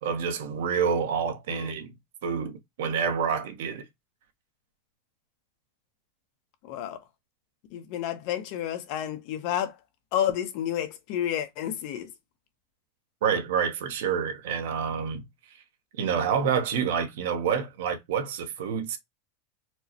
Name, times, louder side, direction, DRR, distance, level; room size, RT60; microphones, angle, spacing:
voice 1, 0.0-1.9 2.2-3.9 13.2-15.3 16.0-19.0, right 7 dB, 70° right, 0.8 m, -28 dB
voice 2, 6.6-7.0 7.7-9.8 10.1-12.1, left 10 dB, 45° left, 0.7 m, -30 dB
4.4 x 2.1 x 2.8 m
supercardioid pair, 170°, 0 cm